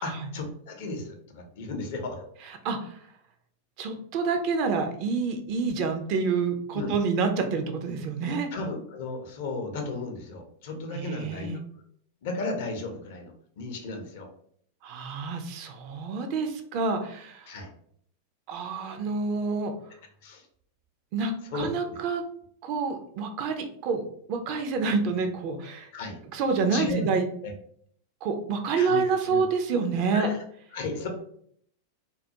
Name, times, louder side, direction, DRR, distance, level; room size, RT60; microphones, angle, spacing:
voice 1, 0.0-2.3 6.7-7.0 8.5-11.6 12.2-14.3 17.5-17.7 20.2-20.5 21.5-22.0 25.9-26.2 26.7-27.1 27.4-27.5 28.8-29.0 29.3-29.4 30.1-30.4 30.7-31.1, left 2 dB, 55° left, 4 dB, 0.5 m, -34 dB
voice 2, 2.6-3.0 3.8-8.5 10.9-11.6 14.8-17.5 18.5-19.7 21.1-22.2 22.6-24.0 24.3-25.9 26.3-27.2 28.2-30.3, right 4 dB, 45° right, 5 dB, 0.4 m, -28 dB
2.2 x 2.1 x 2.7 m, 0.64 s
figure-of-eight pair, 90°, 0 cm